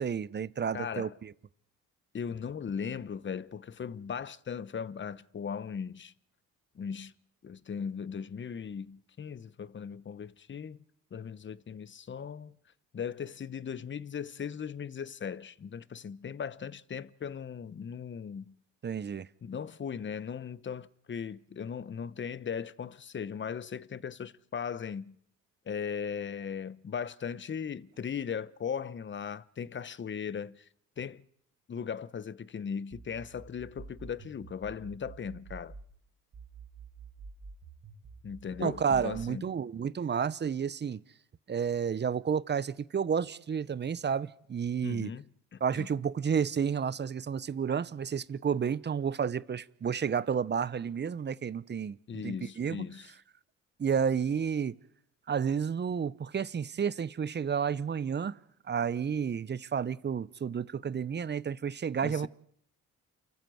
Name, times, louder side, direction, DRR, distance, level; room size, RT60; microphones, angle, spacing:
voice 1, 0.0-1.3 18.8-19.3 38.6-41.0 41.5-45.1 45.6-52.8 53.8-54.8 55.3-58.4 58.7-62.3, right 7 dB, 30° right, 0.8 m, -31 dB
voice 2, 0.7-1.2 2.1-6.1 6.7-7.1 7.4-10.8 11.1-12.5 12.9-18.6 19.4-25.2 25.7-30.6 31.0-31.2 31.7-35.7 38.2-39.4 44.8-45.9 52.1-53.1 62.0-62.3, left 7 dB, 35° left, 1.0 m, -38 dB
sound 1, 32.9-35.9 36.3-39.3, right 4 dB, 50° right, 3.9 m, -48 dB
29.0 x 14.0 x 7.9 m
supercardioid pair, 75°, 34 cm